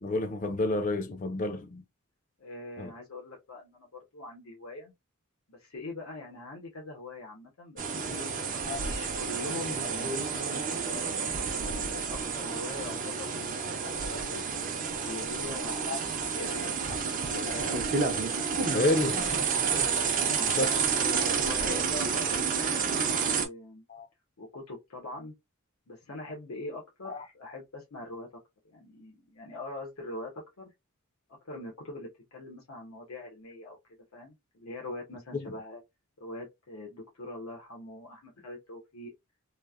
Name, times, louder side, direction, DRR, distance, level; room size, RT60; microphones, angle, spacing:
voice 1, 0.0-1.8 2.8-2.9 8.7-8.8 15.9-16.0 18.7-19.3 20.5-20.7 23.9-24.1 27.0-27.2 35.4-35.5, left 2 dB, 40° left, 0.5 m, -29 dB
voice 2, 2.4-4.9 5.5-8.3 8.7-11.4 11.7-14.4 15.0-16.8 17.2-17.9 20.1-22.9 23.1-23.8 24.4-25.3 25.9-28.3 28.6-30.3 30.6-30.7 31.4-33.8 34.1-35.8 36.2-39.1, left 2 dB, 90° left, 0.9 m, -42 dB
sound 1, 7.8-23.5, right 5 dB, 40° right, 0.5 m, -30 dB
3.1 x 2.0 x 2.3 m
head